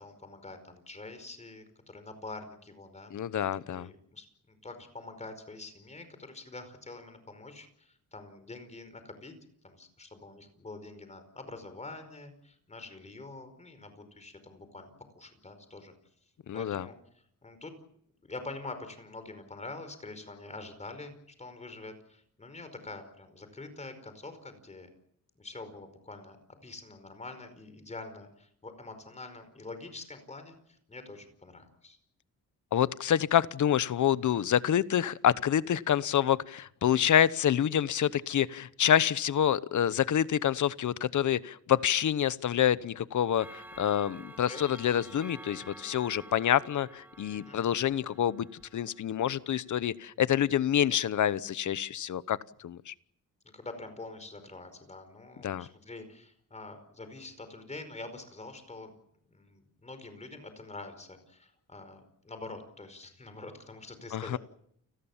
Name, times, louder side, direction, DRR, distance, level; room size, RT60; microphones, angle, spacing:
voice 1, 0.0-3.1 3.7-9.3 9.6-15.9 16.5-17.7 18.2-24.9 25.3-26.4 26.6-32.0 37.0-37.2 44.5-44.6 47.3-47.6 53.5-58.9 59.3-64.4, left 2 dB, 20° left, 9 dB, 5.0 m, -45 dB
voice 2, 3.1-3.9 16.5-16.9 32.7-48.5 48.7-52.9 55.4-55.7 64.1-64.4, left 10 dB, 65° left, 17 dB, 1.0 m, -27 dB
Clock, 43.4-49.4, right 1 dB, 5° right, 1.5 m, -50 dB
29.5 x 19.5 x 7.4 m, 0.72 s
wide cardioid pair, 160°, 32 cm